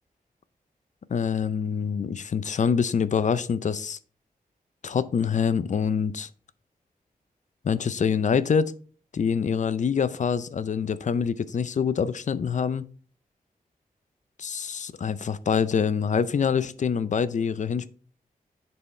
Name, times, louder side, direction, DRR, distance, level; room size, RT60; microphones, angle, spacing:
voice 1, 1.1-4.0 4.8-6.3 7.6-8.7 9.1-12.9 14.4-17.9, left 6 dB, 55° left, 0.4 m, -25 dB
9.9 x 4.4 x 3.2 m
wide cardioid pair, 95°, 15 cm